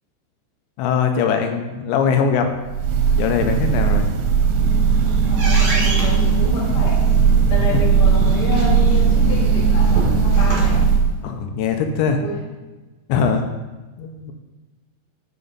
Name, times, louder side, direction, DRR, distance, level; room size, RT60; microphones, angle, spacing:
voice 1, 0.8-2.5 3.2-4.1 7.7-7.8 11.2-12.2 13.1-13.5 14.0-14.3, left 6 dB, 90° left, 5 dB, 2.9 m, -21 dB
Breathing / Bird, 2.7-11.2, right 6 dB, 85° right, 2.8 m, -17 dB
sound 1, 4.3-10.8, equal, 55° right, 2.5 m, -26 dB
voice 2, 5.3-7.1 7.5-10.9 12.1-12.5, left 2 dB, 45° left, -5 dB, 1.9 m, -29 dB
6.3 x 5.9 x 5.4 m, 1.2 s
omnidirectional pair, 5.1 m